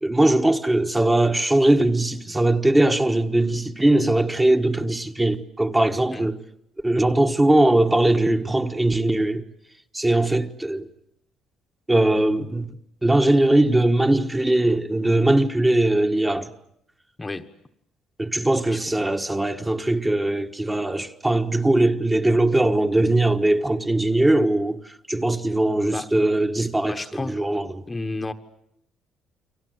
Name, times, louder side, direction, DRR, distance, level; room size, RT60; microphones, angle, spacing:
voice 1, 0.0-6.4 6.8-9.4 9.9-10.9 11.9-12.7 13.0-16.5 18.2-27.8, right 1 dB, 10° right, 1.3 m, -20 dB
voice 2, 17.2-17.5 18.7-19.1 25.9-26.1 26.8-27.4 27.9-28.3, left 2 dB, 15° left, 1.2 m, -32 dB
29.5 x 24.5 x 7.9 m
cardioid pair, 150°, 0 cm